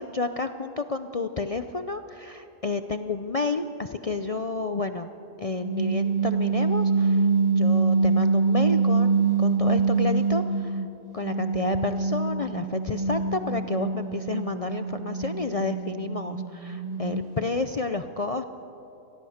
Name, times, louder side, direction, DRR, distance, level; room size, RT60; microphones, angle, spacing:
voice 1, 0.0-5.1 5.4-7.3 7.5-10.8 11.1-18.4, left 3 dB, 50° left, 9 dB, 0.4 m, -30 dB
sound 1, 5.6-10.9 11.2-17.5, right 4 dB, 30° right, 1.3 m, -25 dB
26.0 x 18.5 x 6.5 m, 3.0 s
omnidirectional pair, 1.5 m